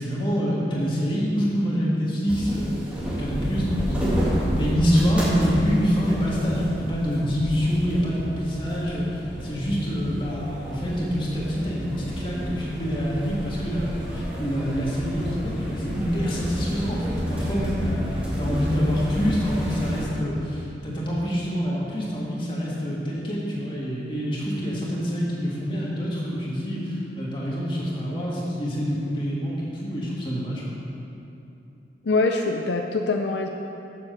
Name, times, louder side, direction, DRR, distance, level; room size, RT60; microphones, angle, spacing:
voice 1, 0.0-30.6, equal, 30° left, -6 dB, 2.0 m, -26 dB
sound 1, 2.3-20.1, equal, 10° right, 1.9 m, -30 dB
voice 2, 32.0-33.5, left 3 dB, 75° left, 3 dB, 0.5 m, -23 dB
7.3 x 6.9 x 6.7 m, 2.8 s
head